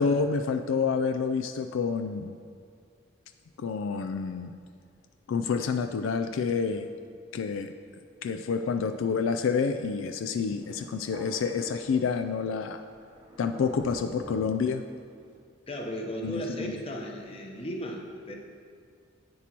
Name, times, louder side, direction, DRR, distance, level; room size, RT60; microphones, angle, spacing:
voice 1, 0.0-2.4 3.6-4.5 5.3-6.9 7.3-7.7 8.2-12.8 13.4-14.8 16.2-16.8, left 5 dB, 75° left, 7 dB, 0.3 m, -28 dB
Thunder, 10.6-15.4, equal, 25° right, 0.7 m, -47 dB
voice 2, 15.7-18.4, equal, 30° left, 1 dB, 0.9 m, -35 dB
10.0 x 8.3 x 3.0 m, 2.1 s
head